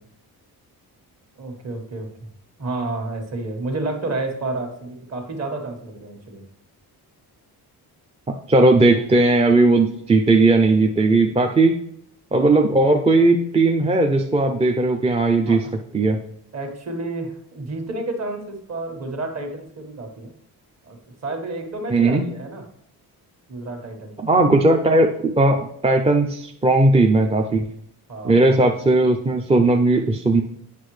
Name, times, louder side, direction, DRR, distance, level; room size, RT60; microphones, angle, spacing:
voice 1, 1.4-2.1 2.6-6.4 15.5-15.8 16.5-20.3 20.9-22.6 23.5-24.1 28.1-28.4, right 2 dB, 40° right, 3 dB, 1.5 m, -30 dB
voice 2, 8.5-11.8 12.3-15.6 15.9-16.2 21.9-22.2 24.2-27.6 28.2-30.4, right 2 dB, 15° right, 3 dB, 0.5 m, -17 dB
8.4 x 6.0 x 3.2 m, 0.71 s
cardioid pair, 110°, 39 cm